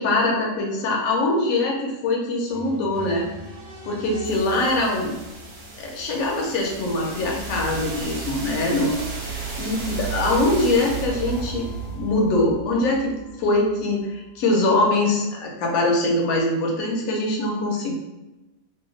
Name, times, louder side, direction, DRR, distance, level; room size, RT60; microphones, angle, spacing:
voice 1, 0.0-3.3 3.8-5.1 5.8-9.0 9.2-17.9, left 2 dB, 70° left, -1 dB, 1.1 m, -23 dB
sound 1, 2.5-14.4, right 4 dB, 55° right, 0.9 m, -34 dB
2.8 x 2.2 x 3.9 m, 1.0 s
omnidirectional pair, 1.6 m